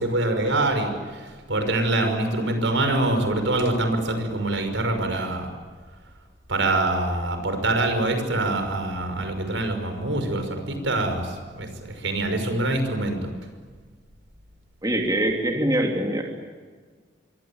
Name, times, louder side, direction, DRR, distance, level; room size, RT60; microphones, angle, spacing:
voice 1, 0.0-5.5 6.5-13.2, right 2 dB, 85° right, 7 dB, 5.9 m, -25 dB
voice 2, 14.8-16.2, right 1 dB, 20° right, 1 dB, 3.0 m, -23 dB
27.0 x 23.5 x 8.9 m, 1.5 s
head